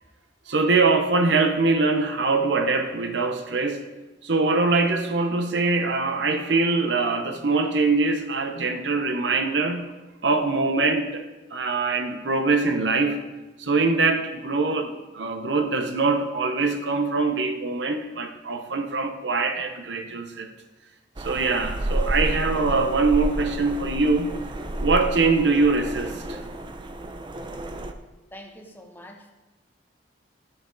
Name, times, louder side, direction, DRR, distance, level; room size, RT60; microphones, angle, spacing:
voice 1, 0.5-3.8 4.2-9.9 10.2-11.3 11.5-13.2 13.6-20.5 21.2-24.3 24.8-26.4, right 3 dB, 75° right, 6 dB, 0.8 m, -23 dB
sound 1, 21.2-27.9, right 1 dB, 25° right, 0.6 m, -30 dB
voice 2, 28.3-29.3, equal, 10° left, 2 dB, 1.1 m, -44 dB
13.5 x 6.6 x 3.9 m, 1.1 s
head